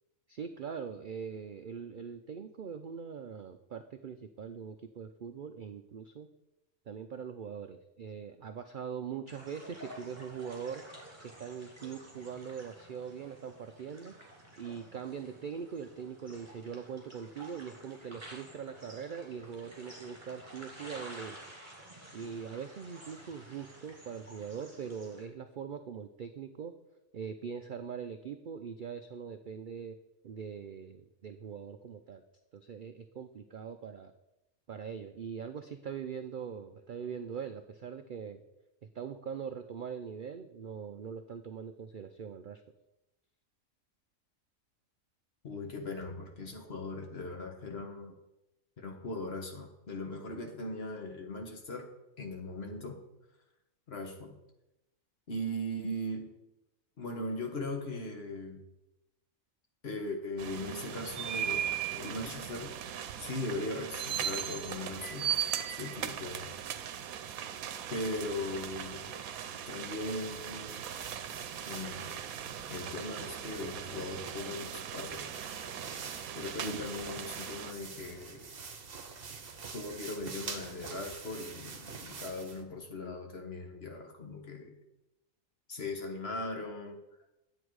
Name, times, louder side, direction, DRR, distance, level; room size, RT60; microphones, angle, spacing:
voice 1, 0.3-6.3 6.9-10.8 11.2-14.1 14.6-21.4 22.1-26.7 27.1-30.0 30.2-32.2 32.5-34.1 34.7-38.4 38.9-42.6, right 7 dB, 60° right, 8 dB, 0.5 m, -42 dB
sound 1, 9.3-25.2, right 1 dB, 20° right, 2.6 m, -52 dB
voice 2, 45.4-48.1 48.8-51.9 52.2-53.0 53.9-54.4 55.3-56.3 57.0-58.7 59.8-62.8 63.2-66.6 67.9-69.1 69.6-70.9 71.7-72.2 72.7-75.3 76.3-78.5 79.7-84.7 85.7-87.0, left 2 dB, 50° left, 3 dB, 1.5 m, -39 dB
sound 2, 60.4-77.7, right 9 dB, 85° right, 1.1 m, -38 dB
sound 3, 70.0-82.6, right 5 dB, 45° right, 1.1 m, -46 dB
10.0 x 7.8 x 4.8 m, 0.93 s
omnidirectional pair, 1.4 m